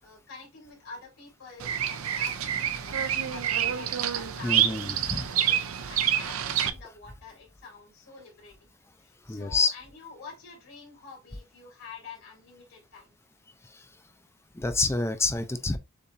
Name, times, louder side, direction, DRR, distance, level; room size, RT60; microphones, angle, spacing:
voice 1, 0.0-8.7 9.0-13.1, left 4 dB, 80° left, 2.9 m, -48 dB
Bird vocalization bird call bird song, 1.6-6.7, right 10 dB, 80° right, 0.6 m, -27 dB
voice 2, 4.4-5.3 9.3-9.7 13.7-13.8 14.5-15.8, left 3 dB, 10° left, 0.4 m, -27 dB
6.9 x 2.8 x 2.6 m
head